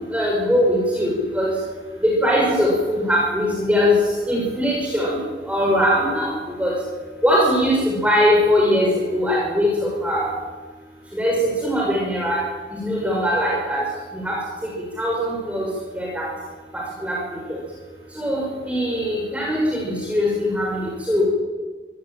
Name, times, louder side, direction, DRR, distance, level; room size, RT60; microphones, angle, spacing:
voice 1, 0.1-1.5 2.0-4.0 4.3-5.2 5.5-6.7 7.2-10.3 11.1-12.4 12.8-13.8 14.1-14.4 15.0-15.6 15.9-16.3 17.0-17.2 17.5-17.6 18.2-21.2, equal, 10° right, -3 dB, 5.8 m, -21 dB
25.0 x 17.5 x 9.1 m, 1.3 s
head